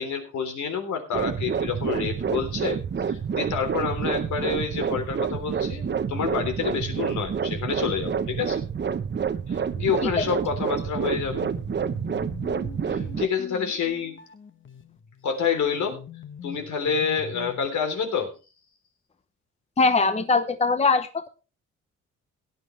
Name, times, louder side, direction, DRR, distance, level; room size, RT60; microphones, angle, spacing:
voice 1, 0.0-8.6 9.5-11.5 12.8-14.2 15.2-16.0 16.4-18.3, left 6 dB, 70° left, 5 dB, 3.5 m, -28 dB
sound 1, 1.1-13.3, right 7 dB, 35° right, 1.0 m, -28 dB
sound 2, 10.9-17.8, left 6 dB, 40° left, 1.4 m, -43 dB
voice 2, 19.8-21.3, left 4 dB, 20° left, 10 dB, 0.9 m, -21 dB
17.0 x 10.0 x 3.2 m, 0.32 s
cardioid pair, 90°, 30 cm